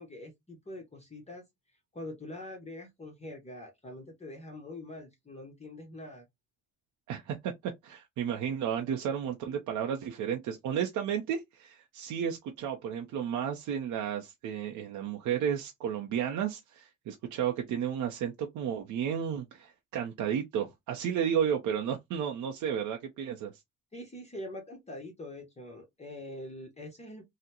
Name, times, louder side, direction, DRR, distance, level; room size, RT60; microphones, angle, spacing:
voice 1, 0.0-1.4 1.9-6.2 23.9-27.2, left 1 dB, 20° left, 0.9 m, -44 dB
voice 2, 7.1-23.5, right 8 dB, 85° right, 0.6 m, -33 dB
3.7 x 2.1 x 2.8 m
cardioid pair, 90°, 30 cm